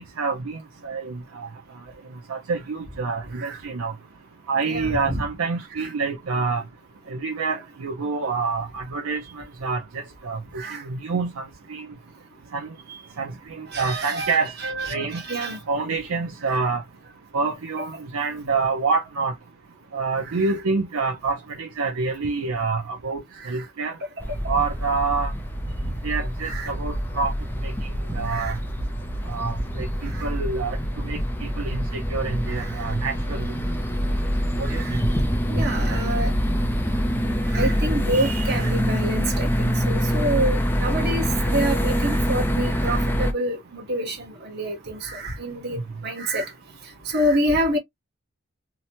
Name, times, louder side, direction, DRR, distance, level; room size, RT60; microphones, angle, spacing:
voice 1, 0.0-1.5 2.3-3.9 4.5-6.6 7.1-11.9 12.5-12.7 13.2-14.5 14.9-15.2 15.7-16.8 17.3-19.3 19.9-24.0 24.5-25.3 26.0-27.3 27.6-27.7 28.1-28.6 29.3-30.8 31.0-33.5 34.6-34.8 45.7-45.8, right 4 dB, 75° right, 0.5 m, -27 dB
voice 2, 4.6-5.2 5.7-5.9 10.5-10.8 12.9-13.0 13.7-15.6 16.4-16.6 20.2-20.4 23.4-23.7 24.3-24.4 26.4-26.7 28.3-28.6 30.0-30.3 32.5-32.9 34.7-35.0 35.5-36.3 37.5-46.5 46.8-47.8, right 1 dB, 45° right, 1.1 m, -28 dB
sound 1, 24.2-43.3, equal, 10° left, 0.4 m, -25 dB
2.9 x 2.1 x 2.7 m
head